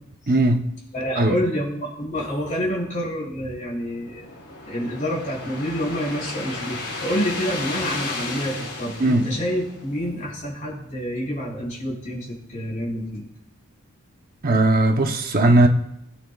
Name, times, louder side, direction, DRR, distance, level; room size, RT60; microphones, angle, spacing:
voice 1, 0.3-0.6 1.2-1.4 9.0-9.3 14.4-15.7, right 2 dB, 40° right, 4 dB, 0.8 m, -18 dB
voice 2, 0.9-4.2 4.6-13.2, equal, 35° left, -4 dB, 4.7 m, -28 dB
sound 1, 3.6-10.1, left 3 dB, 50° left, 5.1 m, -34 dB
21.0 x 9.3 x 2.4 m, 0.78 s
head